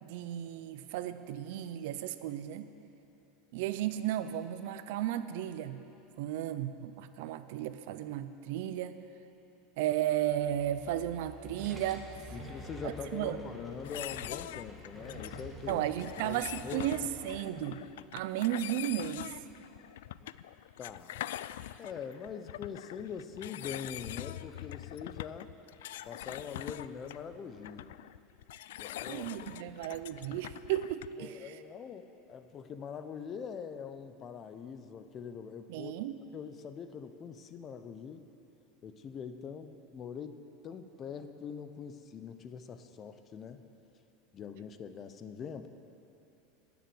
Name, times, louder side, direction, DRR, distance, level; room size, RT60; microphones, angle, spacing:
voice 1, 0.0-2.7 3.5-5.8 6.2-9.0 9.8-12.1 13.1-13.4 15.7-17.8 18.1-19.4 29.1-31.5 35.7-36.2, right 12 dB, 70° right, 12 dB, 0.7 m, -34 dB
sound 1, 10.0-17.8, left 1 dB, 65° left, 3.4 m, -55 dB
sound 2, 11.3-17.3, right 1 dB, 5° right, 2.3 m, -48 dB
voice 2, 12.3-15.9 16.2-16.9 20.2-20.3 20.8-21.2 21.8-25.5 26.0-27.9 28.8-29.3 31.2-35.9 36.3-38.2 38.8-43.6 44.3-45.7, left 6 dB, 30° left, 10 dB, 0.7 m, -43 dB
sound 3, 13.8-31.3, left 13 dB, 90° left, 0.3 m, -44 dB
20.0 x 7.2 x 7.8 m, 2.9 s
supercardioid pair, 145°, 0 cm